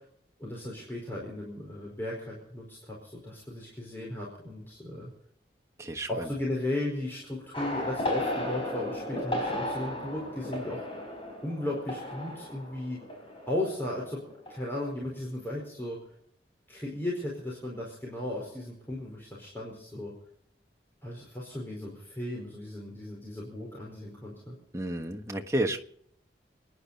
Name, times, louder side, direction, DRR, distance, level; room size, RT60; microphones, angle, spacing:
voice 1, 0.4-5.1 6.1-10.8 11.4-13.0 13.5-14.2 14.5-16.0 16.7-20.1 21.0-24.5, left 1 dB, 10° left, -4 dB, 4.6 m, -36 dB
voice 2, 5.8-6.3 24.7-25.8, right 1 dB, 15° right, 4 dB, 1.4 m, -31 dB
sound 1, 7.5-14.0 14.3-14.6, left 1 dB, 30° left, 5.0 m, -35 dB
30.0 x 10.5 x 4.2 m, 0.69 s
head